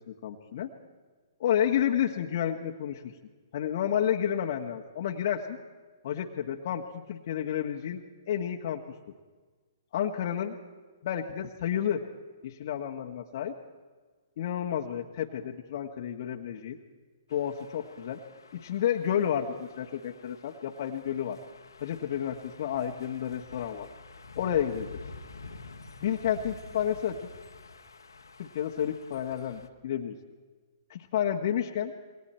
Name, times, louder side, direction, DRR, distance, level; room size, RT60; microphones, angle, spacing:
voice 1, 0.1-0.7 1.4-3.1 3.5-5.6 6.0-6.8 7.1-8.8 9.9-10.6 11.0-12.0 12.4-13.5 14.4-16.8 17.3-18.2 18.5-21.4 21.8-23.9 24.3-24.9 26.0-27.3 28.4-30.1 30.9-31.9, left 9 dB, 55° left, 1 dB, 1.6 m, -30 dB
sound 1, 17.3-29.7, left 3 dB, 85° left, 1.8 m, -49 dB
28.5 x 22.5 x 4.5 m, 1.4 s
hypercardioid pair, 125°, 2 cm